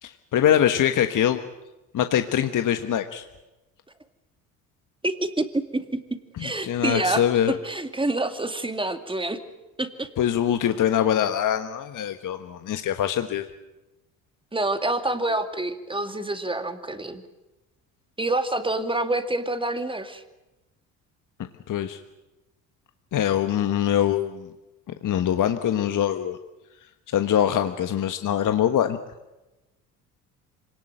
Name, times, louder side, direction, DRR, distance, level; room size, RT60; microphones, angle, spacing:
voice 1, 0.0-1.4 1.9-3.2 6.4-7.6 10.2-13.5 21.7-22.0 23.1-24.5 25.0-26.4 27.1-29.0, left 10 dB, 50° left, 8 dB, 1.4 m, -23 dB
voice 2, 5.0-9.4 9.8-10.1 14.5-17.2 18.2-20.2, right 2 dB, 10° right, 8 dB, 2.4 m, -27 dB
25.5 x 18.5 x 9.0 m, 1.0 s
hypercardioid pair, 60°, 42 cm